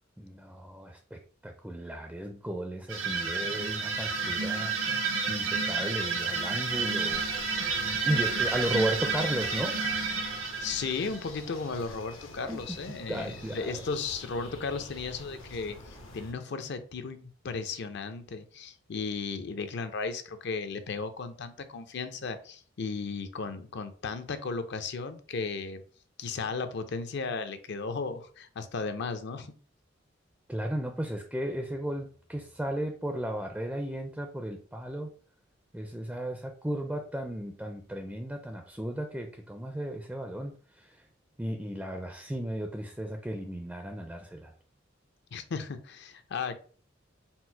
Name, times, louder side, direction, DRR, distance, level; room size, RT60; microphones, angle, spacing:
voice 1, 0.2-4.7 5.3-7.2 7.8-9.8 12.5-12.6 13.1-13.8 30.5-35.1 35.7-41.1 41.4-44.5, right 1 dB, 5° right, 4 dB, 0.4 m, -35 dB
sound 1, 2.9-11.3, right 4 dB, 80° right, 1.0 m, -30 dB
sound 2, 7.1-16.3, left 2 dB, 80° left, 1.0 m, -47 dB
voice 2, 10.6-25.8 26.2-29.5 45.3-46.6, left 4 dB, 60° left, 10 dB, 0.5 m, -35 dB
4.4 x 2.0 x 4.4 m, 0.41 s
head